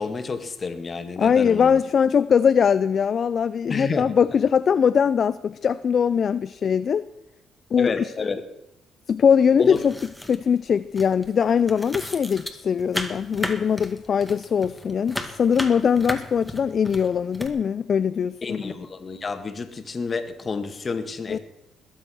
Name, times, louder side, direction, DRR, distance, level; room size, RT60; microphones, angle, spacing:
voice 1, 0.0-1.8 3.7-4.1 7.8-8.4 9.6-9.9 18.4-21.4, left 4 dB, 35° left, 1.9 m, -30 dB
voice 2, 1.2-7.0 7.7-8.1 9.1-9.9 10.3-18.6 21.3-21.4, left 7 dB, 50° left, 0.5 m, -21 dB
sound 1, 9.6-10.7 11.0-17.5, left 1 dB, ahead, 2.1 m, -35 dB
21.0 x 8.0 x 6.4 m
cardioid pair, 85°, 0 cm